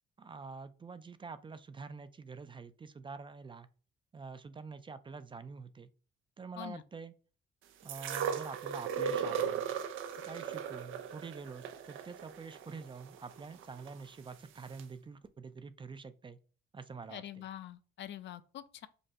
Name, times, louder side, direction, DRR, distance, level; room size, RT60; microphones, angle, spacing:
voice 1, 0.2-3.7 4.1-5.9 6.4-7.1 7.8-9.7 10.2-16.4 16.7-17.5, right 4 dB, 25° right, 0.4 m, -46 dB
sound 1, 7.9-13.9 14.8-14.9, right 7 dB, 85° right, 0.5 m, -37 dB
voice 2, 17.1-18.9, left 11 dB, 65° left, 0.5 m, -45 dB
5.3 x 2.2 x 2.8 m
cardioid pair, 90°, 20 cm